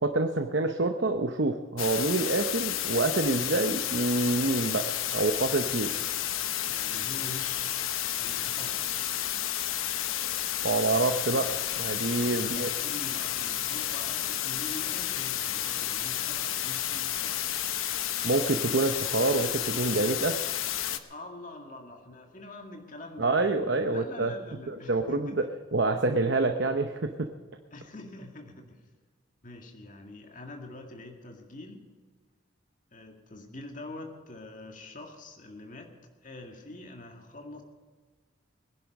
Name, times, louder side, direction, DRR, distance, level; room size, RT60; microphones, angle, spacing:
voice 1, 0.0-4.8 5.1-5.9 10.6-11.5 11.8-12.7 18.2-20.3 23.2-24.3 24.7-25.4 25.7-27.3, right 2 dB, 60° right, 6 dB, 0.8 m, -27 dB
sound 1, 1.8-21.0, left 11 dB, 85° left, 0.9 m, -31 dB
voice 2, 6.7-8.8 12.3-17.4 21.1-23.5 23.9-25.4 27.7-28.8 29.4-31.8 32.9-35.9 36.2-37.6, left 2 dB, 40° left, 3 dB, 2.0 m, -45 dB
20.5 x 11.0 x 5.4 m, 1.5 s
head